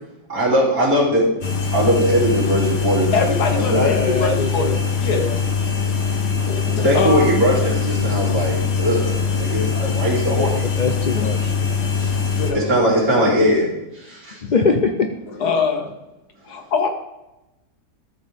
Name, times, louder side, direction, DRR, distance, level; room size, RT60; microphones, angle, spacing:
voice 1, 0.3-1.3 1.7-3.8 6.8-10.7 12.0-12.1 12.5-14.4, equal, 60° right, -5 dB, 3.6 m, -20 dB
sound 1, 1.4-12.5, left 5 dB, 45° left, 1.2 m, -22 dB
voice 2, 3.1-4.7 5.0-5.3 6.5-7.4 11.2-11.3 12.3-12.7 15.4-15.9 16.5-16.9, left 4 dB, 70° left, 4 dB, 1.8 m, -23 dB
voice 3, 3.7-4.8 5.1-5.3 9.9-10.0 10.4-11.5 14.4-15.1, left 4 dB, 90° left, 4 dB, 0.4 m, -22 dB
13.0 x 7.5 x 3.5 m, 0.94 s
omnidirectional pair, 1.8 m